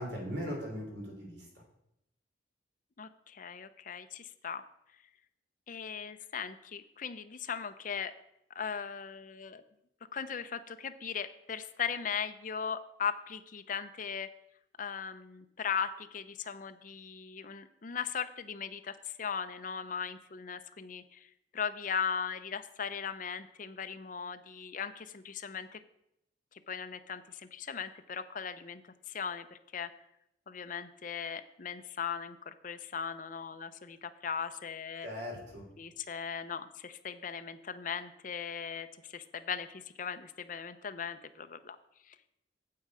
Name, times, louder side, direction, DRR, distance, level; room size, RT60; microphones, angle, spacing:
voice 1, 0.0-1.4 35.0-35.6, equal, 65° right, 0 dB, 3.3 m, -39 dB
voice 2, 3.0-4.6 5.7-8.1 8.6-9.6 10.1-14.3 14.8-21.3 21.5-25.8 26.7-28.8 29.1-29.5 29.7-29.9 30.5-35.1 35.8-38.9 39.1-41.8, left 6 dB, 45° left, 9 dB, 0.6 m, -38 dB
8.5 x 7.7 x 4.9 m, 0.80 s
head